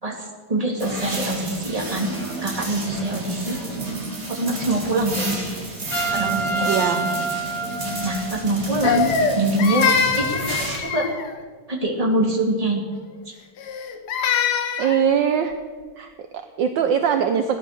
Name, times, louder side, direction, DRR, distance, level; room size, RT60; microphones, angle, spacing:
voice 1, 0.0-2.1 2.4-3.6 4.3-5.4 6.1-7.1 8.0-9.1 9.4-9.9 10.2-10.4 10.8-11.1 11.7-12.8 13.3-13.4, right 2 dB, 15° right, -1 dB, 2.4 m, -24 dB
sound 1, 0.8-10.8, right 2 dB, 40° right, 3.7 m, -31 dB
Trumpet, 5.9-8.6, right 4 dB, 60° left, 3.0 m, -27 dB
voice 2, 6.6-7.0 14.8-15.5 16.0-17.6, right 8 dB, 65° right, 7 dB, 1.4 m, -22 dB
Crying sobbing, 8.8-11.4 13.6-15.0, left 6 dB, 90° left, 2.1 m, -23 dB
17.0 x 11.0 x 6.6 m, 1.5 s
omnidirectional pair, 2.4 m